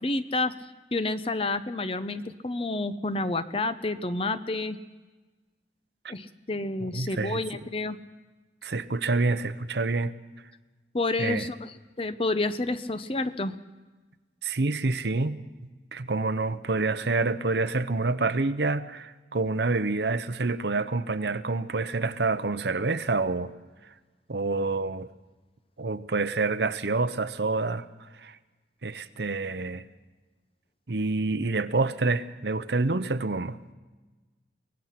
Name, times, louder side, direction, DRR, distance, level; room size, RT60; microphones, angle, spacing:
voice 1, 0.0-0.5 0.9-4.8 6.1-8.0 10.9-13.5, left 2 dB, 30° left, 0.7 m, -29 dB
voice 2, 6.9-7.4 8.6-10.1 11.2-11.5 14.4-15.4 15.9-23.5 24.3-25.1 25.8-28.4 28.8-29.8 30.9-33.6, right 3 dB, 70° right, 0.8 m, -27 dB
24.0 x 18.5 x 5.9 m
head